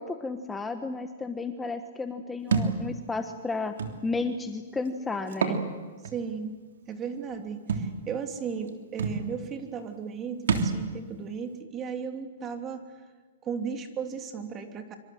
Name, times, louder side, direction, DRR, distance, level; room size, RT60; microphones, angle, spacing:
voice 1, 0.0-3.7 4.0-5.6, left 3 dB, 10° left, 7 dB, 1.2 m, -33 dB
Thump thud, 2.5-2.8 3.8-3.9 5.3-5.6 6.0-6.1 7.7-7.9 8.7-8.8 9.0-9.2 10.5-10.8, right 5 dB, 80° right, 3.3 m, -26 dB
voice 2, 6.1-6.6 6.9-12.8 13.4-14.9, right 6 dB, 25° right, 5 dB, 3.0 m, -35 dB
26.0 x 25.0 x 7.8 m, 1.4 s
hypercardioid pair, 135°, 0 cm